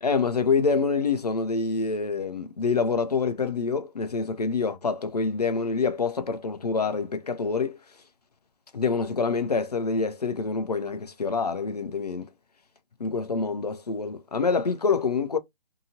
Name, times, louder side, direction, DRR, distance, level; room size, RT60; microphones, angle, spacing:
voice 1, 0.0-7.8 8.7-12.3 13.0-15.4, left 4 dB, 40° left, 0.4 m, -26 dB
2.7 x 2.6 x 2.7 m
hypercardioid pair, 160°, 32 cm